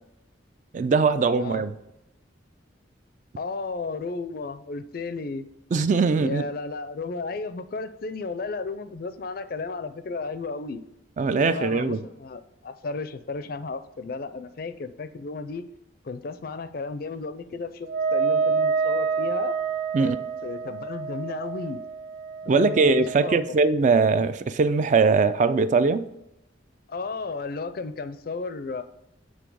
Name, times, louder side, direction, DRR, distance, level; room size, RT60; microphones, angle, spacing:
voice 1, 0.7-1.7 5.7-6.4 11.2-12.0 19.9-20.2 22.5-26.1, right 4 dB, 40° right, 12 dB, 0.3 m, -21 dB
voice 2, 3.4-5.5 6.2-10.8 11.4-15.6 16.0-19.5 20.0-20.2 20.4-21.8 22.4-23.4 26.9-28.8, left 3 dB, 50° left, 12 dB, 0.4 m, -33 dB
Wind instrument woodwind instrument, 17.9-23.5, right 5 dB, 80° right, 0.9 m, -28 dB
7.1 x 3.7 x 6.1 m, 0.87 s
head